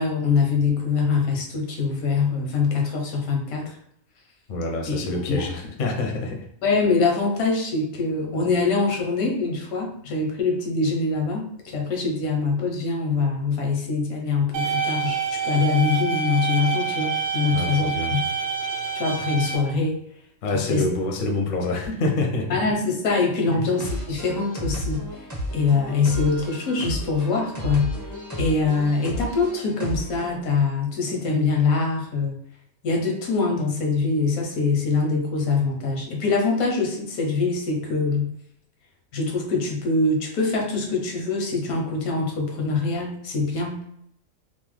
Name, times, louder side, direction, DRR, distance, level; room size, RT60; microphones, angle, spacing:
voice 1, 0.0-3.8 4.9-5.4 6.6-15.2 15.4-18.2 18.9-20.0 20.5-20.9 22.5-25.1 25.5-28.1 28.4-32.4 32.8-38.3 39.1-43.8, left 4 dB, 85° left, 0 dB, 1.2 m, -24 dB
voice 2, 4.5-6.4 17.5-18.2 20.4-22.6 23.5-23.6, left 2 dB, 60° left, 2 dB, 0.5 m, -26 dB
sound 1, 14.5-19.6, right 6 dB, 70° right, 0.9 m, -27 dB
sound 2, 23.7-30.4, equal, 25° right, 0.4 m, -33 dB
2.9 x 2.0 x 3.1 m, 0.72 s
omnidirectional pair, 1.5 m